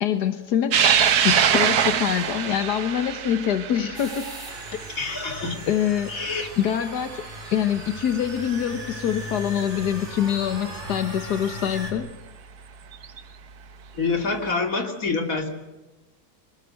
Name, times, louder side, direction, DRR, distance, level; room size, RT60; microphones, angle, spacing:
voice 1, 0.0-1.0 1.2-4.3 5.7-6.1 6.6-7.2 7.5-12.1, left 9 dB, 90° left, 8 dB, 1.7 m, -25 dB
sound 1, 0.7-7.4 7.8-7.9 9.2-9.3 11.4-11.5 12.9-13.2, right 8 dB, 75° right, 1.6 m, -24 dB
sound 2, 3.9-11.9, equal, 30° right, 6.6 m, -38 dB
voice 2, 4.9-5.5 6.1-6.5 13.9-15.5, left 4 dB, 60° left, 4 dB, 3.1 m, -26 dB
25.5 x 19.5 x 7.8 m, 1.1 s
omnidirectional pair, 1.7 m